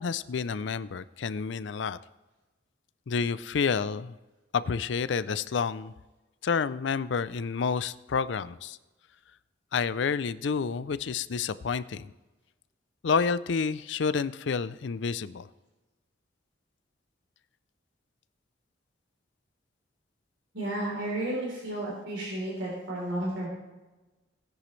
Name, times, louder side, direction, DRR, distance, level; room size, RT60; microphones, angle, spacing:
voice 1, 0.0-2.0 3.1-4.1 4.5-5.9 6.4-8.8 9.7-12.1 13.0-15.5, left 5 dB, 70° left, 16 dB, 0.4 m, -29 dB
voice 2, 20.5-23.5, right 1 dB, 70° right, -3 dB, 3.5 m, -32 dB
17.5 x 10.0 x 3.2 m, 1.1 s
head